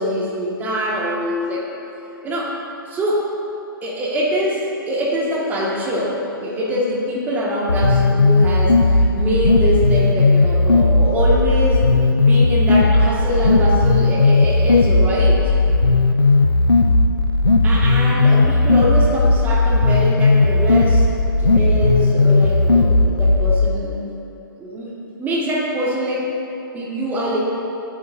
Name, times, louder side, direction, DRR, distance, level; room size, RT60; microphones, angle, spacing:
voice 1, 0.0-1.6 2.2-2.5 2.9-3.3 3.8-11.9 12.2-15.4 17.6-21.0 21.4-24.0 24.6-24.9 25.2-26.3 26.7-27.4, equal, 15° right, -4 dB, 1.9 m, -23 dB
sound 1, 7.7-23.7, left 3 dB, 80° left, 0.9 m, -15 dB
23.0 x 8.5 x 2.7 m, 3.0 s
figure-of-eight pair, 120°, 12 cm